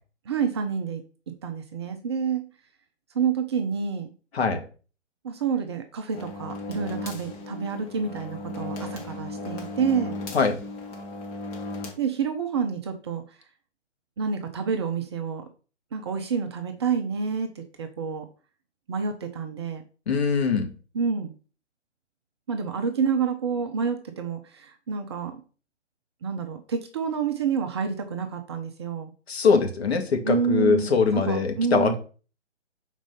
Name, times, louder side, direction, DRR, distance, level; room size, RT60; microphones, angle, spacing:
voice 1, 0.3-1.0 1.4-2.5 3.1-4.1 5.2-10.2 12.0-13.2 14.2-15.4 15.9-18.3 18.9-19.8 20.9-21.3 22.5-25.4 26.2-29.1 30.2-31.9, right 6 dB, 25° right, 6 dB, 0.6 m, -28 dB
sound 1, 6.1-11.9, left 2 dB, 15° left, 1.2 m, -36 dB
voice 2, 20.1-20.7 29.3-31.9, left 5 dB, 60° left, 5 dB, 1.9 m, -22 dB
6.1 x 4.5 x 5.5 m, 0.37 s
figure-of-eight pair, 135°, 36 cm